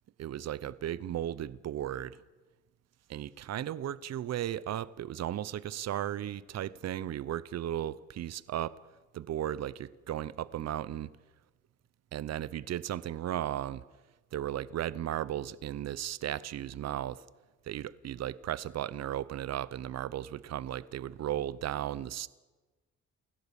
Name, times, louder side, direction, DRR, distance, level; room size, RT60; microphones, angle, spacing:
voice 1, 0.2-2.2 3.1-8.8 9.1-11.1 12.1-13.8 14.3-17.2 17.6-22.3, right 11 dB, 60° right, 0.8 m, -35 dB
29.5 x 16.5 x 7.1 m
cardioid pair, 90°, 30 cm